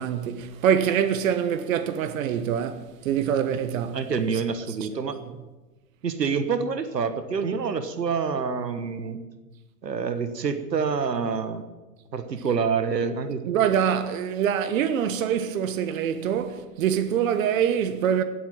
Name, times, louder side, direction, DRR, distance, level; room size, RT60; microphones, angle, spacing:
voice 1, 0.0-4.0 4.7-5.1 13.5-18.2, right 8 dB, 55° right, 1.3 m, -25 dB
voice 2, 3.9-5.1 6.0-9.2 9.8-11.6 12.1-13.4, right 5 dB, 80° right, 1.4 m, -27 dB
16.5 x 8.6 x 7.5 m
figure-of-eight pair, 100°, 49 cm